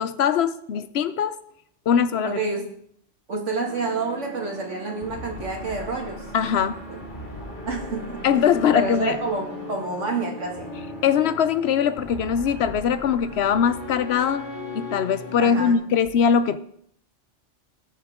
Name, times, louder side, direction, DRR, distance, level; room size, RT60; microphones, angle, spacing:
voice 1, 0.0-1.4 1.9-2.4 6.3-6.8 8.2-9.2 11.0-14.5 14.7-16.6, left 7 dB, 65° left, 14 dB, 0.9 m, -21 dB
voice 2, 2.2-2.7 3.3-6.2 6.9-7.0 7.7-8.2 8.7-10.7 15.4-15.8, right 3 dB, 75° right, 1 dB, 2.5 m, -28 dB
sound 1, 3.6-15.7, left 1 dB, 40° left, 2.2 m, -38 dB
18.5 x 6.8 x 3.6 m, 0.67 s
omnidirectional pair, 1.3 m